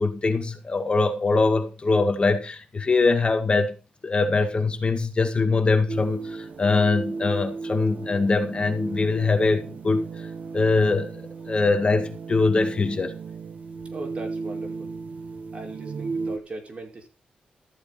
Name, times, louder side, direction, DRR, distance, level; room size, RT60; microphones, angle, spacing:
voice 1, 0.0-3.8 4.0-10.1 10.5-13.1, left 3 dB, 40° left, 2.0 m, -23 dB
sound 1, 5.9-16.4, right 4 dB, 65° right, 1.3 m, -35 dB
voice 2, 13.9-14.9 15.5-17.1, right 2 dB, 50° right, 5.8 m, -38 dB
14.5 x 8.2 x 4.4 m
cardioid pair, 75°, 3 cm